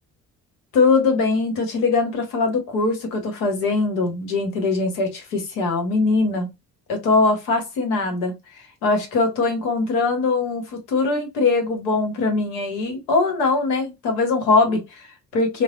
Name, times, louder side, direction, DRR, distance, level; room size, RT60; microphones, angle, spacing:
voice 1, 0.7-6.5 6.9-15.6, left 3 dB, 70° left, 1.0 m, -21 dB
3.2 x 2.0 x 2.3 m
figure-of-eight pair, 45°, 47 cm